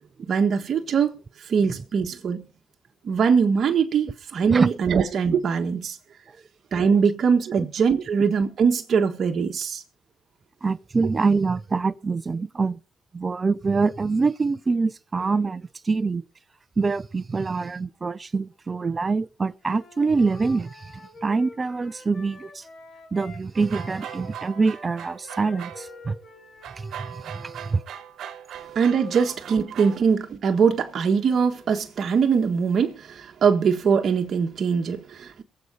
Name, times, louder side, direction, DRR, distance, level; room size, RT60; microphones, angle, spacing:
voice 1, 0.3-1.1 1.4-2.5 3.0-6.0 6.7-9.8 28.7-35.4, right 6 dB, 60° right, 1.5 m, -22 dB
voice 2, 4.5-5.0 7.6-7.7 10.6-12.8 13.1-16.2 16.8-20.9 21.2-22.6 23.1-26.2 26.8-27.8, right 4 dB, 35° right, 0.7 m, -25 dB
Wind instrument woodwind instrument, 19.6-23.4 23.7-27.8, left 2 dB, 55° left, 4.4 m, -46 dB
sound 1, 23.5-26.2 26.6-30.1, right 10 dB, 80° right, 1.4 m, -40 dB
22.5 x 7.9 x 4.2 m
cardioid pair, 70°, 0 cm